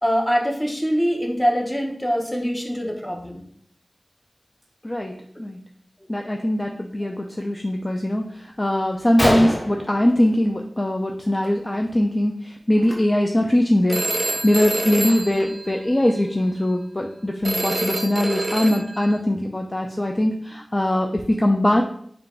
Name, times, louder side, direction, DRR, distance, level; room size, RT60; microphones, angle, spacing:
voice 1, 0.0-3.4, equal, 15° left, 1 dB, 0.8 m, -23 dB
voice 2, 4.8-5.6 6.1-21.8, left 1 dB, 30° left, 2 dB, 0.4 m, -21 dB
Gunshot gunfire, 8.5-8.6 8.9-9.0 9.2-10.8 11.1-11.5 11.7-12.0 12.7-12.9 13.5-13.6 14.0-15.6, equal, 60° left, 1.1 m, -27 dB
Telephone, 13.9-16.2 17.4-19.2, right 2 dB, 50° right, 0.5 m, -27 dB
3.8 x 2.4 x 4.3 m, 0.63 s
wide cardioid pair, 50°, 0 cm